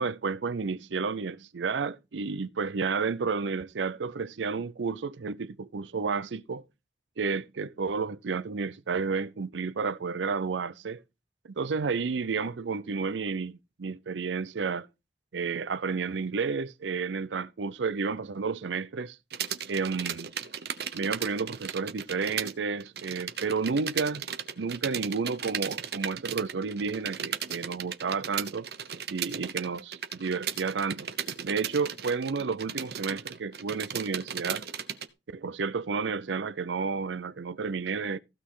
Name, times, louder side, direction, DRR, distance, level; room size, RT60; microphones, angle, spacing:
voice 1, 0.0-6.6 7.2-11.0 11.6-14.9 15.3-19.2 19.7-20.3 20.9-24.2 24.6-28.7 29.1-31.1 31.4-34.7 35.3-38.2, right 5 dB, 90° right, 0.6 m, -31 dB
sound 1, 19.3-22.5 22.8-35.1, right 8 dB, 60° right, 0.9 m, -36 dB
15.5 x 6.3 x 3.7 m
head